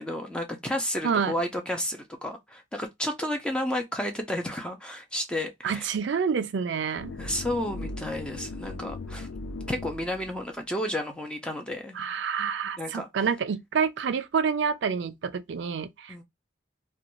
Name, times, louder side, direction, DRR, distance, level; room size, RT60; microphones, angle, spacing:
voice 1, 0.0-5.9 7.2-9.3 9.7-12.0 12.8-13.1 16.1-16.2, left 1 dB, 5° left, 0.4 m, -32 dB
voice 2, 1.0-1.3 5.6-7.1 11.9-16.1, right 6 dB, 70° right, 0.4 m, -28 dB
sound 1, 7.0-10.4, left 2 dB, 85° left, 0.4 m, -38 dB
2.5 x 2.2 x 3.0 m
head